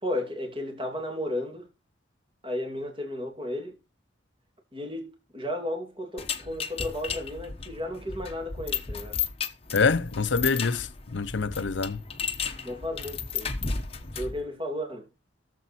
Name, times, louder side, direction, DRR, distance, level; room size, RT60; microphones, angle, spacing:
voice 1, 0.0-1.7 2.4-3.8 4.7-9.2 12.6-13.5 14.1-15.1, left 1 dB, 25° right, 2.6 m, -34 dB
sound 1, 6.2-14.4, left 6 dB, 30° left, 1.1 m, -34 dB
voice 2, 9.7-12.0, left 4 dB, 75° left, 0.7 m, -26 dB
17.5 x 7.4 x 4.3 m
head